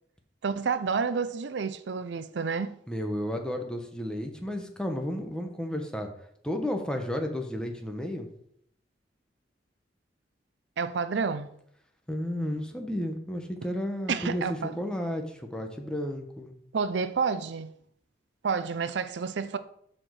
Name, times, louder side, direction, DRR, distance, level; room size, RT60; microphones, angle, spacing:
voice 1, 0.4-2.8 10.8-11.5 14.1-14.7 16.7-17.7 18.4-19.6, right 5 dB, 75° right, 0.5 m, -29 dB
voice 2, 2.9-6.1 6.4-8.3 12.1-14.4 14.8-16.5, left 1 dB, 5° left, 1.0 m, -32 dB
7.6 x 4.4 x 6.4 m
head